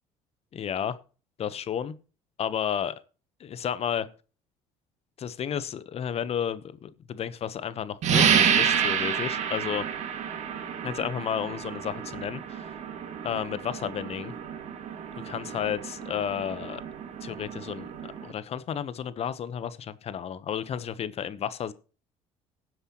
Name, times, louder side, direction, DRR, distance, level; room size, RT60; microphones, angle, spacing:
voice 1, 0.5-1.0 1.4-1.9 2.4-2.9 3.4-4.1 5.2-9.9 10.8-12.7 13.2-14.3 15.2-16.8 17.2-17.9 18.2-21.7, left 8 dB, 50° left, 15 dB, 1.0 m, -32 dB
sound 1, 8.0-18.3, right 8 dB, 60° right, 2.3 m, -29 dB
18.5 x 7.8 x 3.0 m, 0.35 s
supercardioid pair, 80°, 13 cm